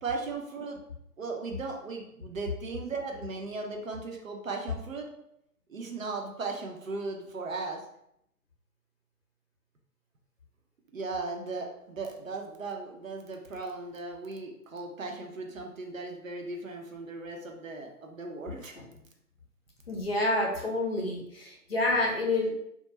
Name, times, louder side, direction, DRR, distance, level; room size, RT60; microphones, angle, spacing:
voice 1, 0.0-0.8 1.2-5.1 5.7-7.8 10.9-18.8, right 3 dB, 60° right, 2 dB, 0.6 m, -37 dB
voice 2, 19.9-22.5, left 2 dB, 40° left, -2 dB, 0.7 m, -28 dB
2.3 x 2.1 x 2.9 m, 0.76 s
figure-of-eight pair, 140°, 47 cm